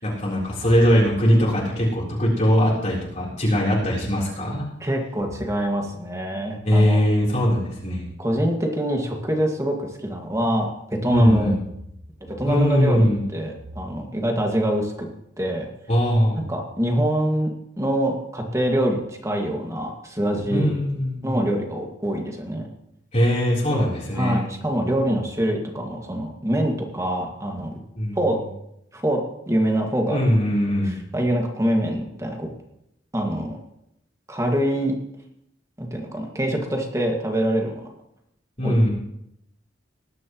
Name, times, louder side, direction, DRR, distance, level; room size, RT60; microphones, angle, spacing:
voice 1, 0.0-4.7 6.6-8.1 11.1-11.6 12.5-13.2 15.9-16.5 20.5-21.3 23.1-24.4 28.0-28.2 30.1-31.0 38.6-38.9, equal, 40° left, -5 dB, 3.9 m, -20 dB
voice 2, 4.8-7.0 8.2-11.5 12.4-15.1 15.4-15.7 16.5-17.5 17.8-20.7 21.2-22.7 23.7-23.9 24.2-27.7 28.2-28.4 28.9-29.2 29.5-30.2 30.8-32.5 33.1-33.6 34.3-34.9 35.8-37.9 38.6-38.8, right 1 dB, 15° right, 2 dB, 2.0 m, -24 dB
19.5 x 11.0 x 3.1 m, 0.79 s
head